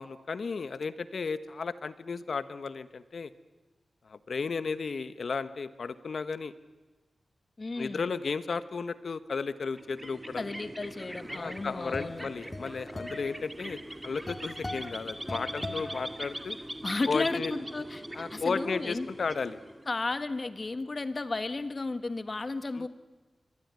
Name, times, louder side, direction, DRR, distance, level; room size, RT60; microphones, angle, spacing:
voice 1, 0.0-3.3 4.0-6.5 7.8-10.5 11.3-16.6 17.1-17.5 18.1-19.6 22.7-22.9, left 4 dB, 65° left, 13 dB, 1.3 m, -34 dB
voice 2, 7.6-8.1 10.3-12.3 16.8-18.0 18.3-19.1 19.9-22.9, left 3 dB, 35° left, 11 dB, 1.5 m, -33 dB
sound 1, 9.7-20.1, right 1 dB, 10° right, 2.1 m, -41 dB
sound 2, 11.3-16.8, left 1 dB, 20° left, 1.8 m, -41 dB
25.0 x 23.0 x 9.6 m, 1.2 s
wide cardioid pair, 120°, 0 cm